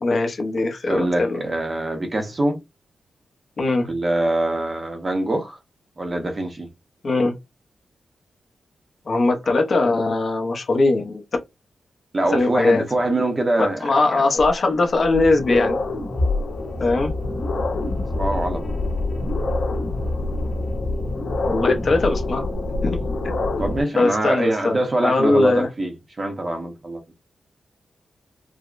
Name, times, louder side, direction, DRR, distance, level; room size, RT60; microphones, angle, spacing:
voice 1, 0.0-1.4 3.6-3.9 7.0-7.4 9.1-11.2 12.3-12.8 13.6-15.8 16.8-17.2 21.5-22.5 22.8-23.1 24.0-25.7, left 3 dB, 40° left, 0.7 m, -20 dB
voice 2, 0.9-2.6 3.8-5.6 6.0-6.7 12.1-13.8 14.1-14.2 18.1-18.8 23.6-27.0, right 1 dB, 25° right, 0.7 m, -24 dB
sound 1, 14.4-14.5 15.0-23.8, left 2 dB, 60° left, 1.5 m, -25 dB
4.8 x 2.1 x 2.5 m
wide cardioid pair, 175°, 0 cm